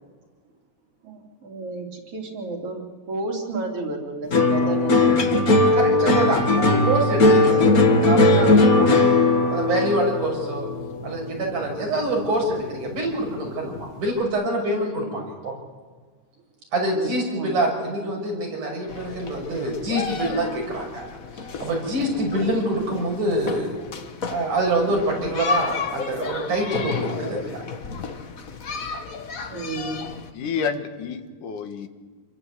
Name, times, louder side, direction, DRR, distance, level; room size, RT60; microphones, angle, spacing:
voice 1, 1.0-2.8 3.1-5.2 6.2-6.3 8.3-8.6 14.6-14.8 16.9-17.6 29.5-30.2, right 2 dB, 50° right, 2 dB, 4.1 m, -32 dB
sound 1, 4.3-12.8 13.1-13.7, left 2 dB, 35° left, 1.8 m, -19 dB
voice 2, 4.7-5.3 30.3-31.9, left 6 dB, 85° left, 7 dB, 3.1 m, -30 dB
voice 3, 5.7-9.1 9.5-10.7 11.0-15.6 16.7-21.0 21.6-23.8 24.3-27.6, right 1 dB, 85° right, 0 dB, 7.8 m, -25 dB
sound 2, 18.9-30.3, left 4 dB, 50° left, 0.9 m, -33 dB
27.5 x 22.0 x 8.4 m, 1.5 s
omnidirectional pair, 3.5 m